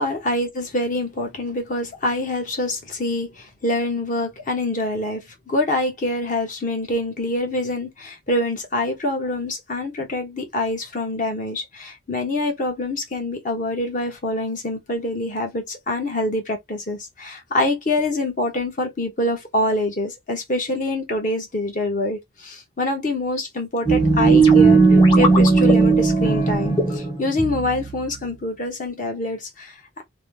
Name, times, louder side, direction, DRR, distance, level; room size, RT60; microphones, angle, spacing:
voice 1, 0.0-30.0, left 1 dB, 45° left, 1.0 m, -25 dB
sound 1, 23.9-28.1, right 3 dB, 25° left, 1.1 m, -16 dB
3.0 x 2.2 x 3.2 m
head